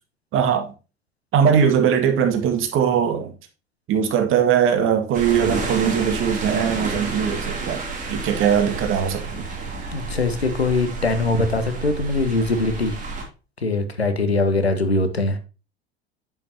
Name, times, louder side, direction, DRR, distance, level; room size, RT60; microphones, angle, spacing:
voice 1, 0.3-0.7 1.3-3.3 3.9-7.8 8.1-9.4, right 8 dB, 40° right, 1.9 m, -20 dB
sound 1, 5.1-13.2, right 3 dB, 25° right, 3.0 m, -30 dB
voice 2, 9.9-13.0 13.6-15.4, left 2 dB, 90° left, 1.1 m, -22 dB
8.4 x 7.2 x 2.9 m
figure-of-eight pair, 75°, 30 cm